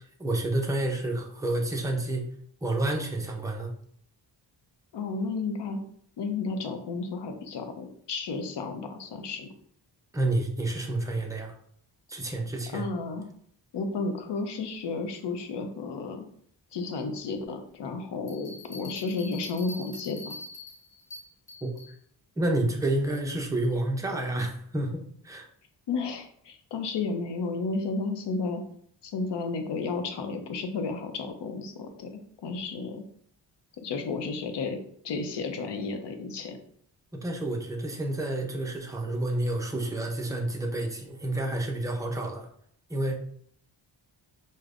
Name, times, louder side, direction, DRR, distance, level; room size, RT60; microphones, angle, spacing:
voice 1, 0.2-2.3 2.6-3.7 10.1-11.5 12.1-12.9 21.6-21.8 22.4-25.5 37.1-42.5 42.9-43.2, right 1 dB, 10° right, 1 dB, 0.4 m, -29 dB
voice 2, 4.9-5.8 6.2-9.5 12.7-13.3 13.7-16.2 16.7-20.3 25.9-28.6 29.0-32.1 32.4-33.0 33.8-34.8 35.0-36.6, left 4 dB, 70° left, 6 dB, 0.6 m, -32 dB
sound 1, 18.3-21.9, left 2 dB, 15° left, 1.4 m, -44 dB
4.9 x 2.1 x 2.4 m, 0.62 s
wide cardioid pair, 135°, 43 cm